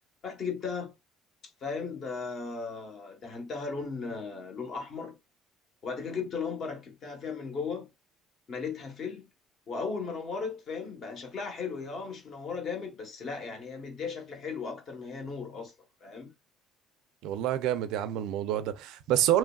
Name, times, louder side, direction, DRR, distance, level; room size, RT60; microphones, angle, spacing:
voice 1, 0.2-0.9 1.6-5.2 5.8-7.9 8.5-9.3 9.7-15.7 16.0-16.3, left 5 dB, 40° left, 0.9 m, -36 dB
voice 2, 17.2-19.4, right 11 dB, 70° right, 0.4 m, -27 dB
2.9 x 2.3 x 2.3 m
cardioid pair, 165°, 0 cm